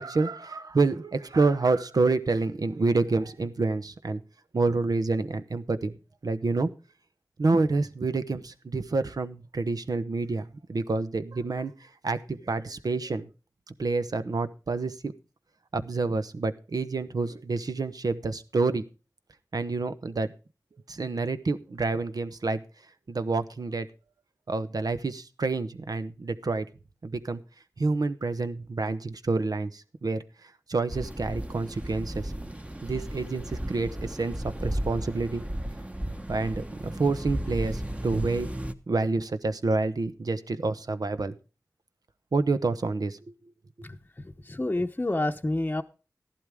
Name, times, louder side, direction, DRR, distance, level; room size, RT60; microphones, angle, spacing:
voice 1, 0.0-4.2 4.5-6.0 6.2-6.7 7.4-11.7 12.0-13.3 13.8-15.1 15.7-18.8 19.5-20.3 20.9-22.6 23.1-23.9 24.5-26.7 27.0-27.4 27.8-30.2 30.7-32.3 32.8-35.4 36.3-38.5 38.9-41.3 42.3-43.2, right 3 dB, 75° right, 11 dB, 1.0 m, -28 dB
sound 1, 30.9-38.7, right 1 dB, 20° right, 1.2 m, -35 dB
voice 2, 43.8-45.8, left 2 dB, 25° left, 4 dB, 0.8 m, -29 dB
14.0 x 11.5 x 3.6 m, 0.33 s
wide cardioid pair, 55°, 6 cm